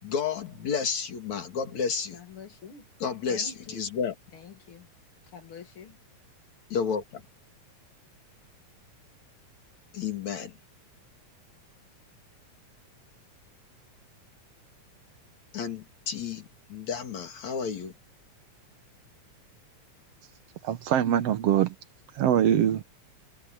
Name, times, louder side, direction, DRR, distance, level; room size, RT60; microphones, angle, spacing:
voice 1, 0.0-2.2 3.0-4.2 6.7-7.2 9.9-10.5 15.5-17.9, left 6 dB, 65° left, 4.0 m, -31 dB
voice 2, 2.1-2.8 3.3-3.8 4.3-4.9 5.3-6.0, left 6 dB, 45° left, 2.7 m, -46 dB
voice 3, 20.6-21.7 22.2-22.8, right 10 dB, 65° right, 1.8 m, -23 dB
omnidirectional pair, 3.5 m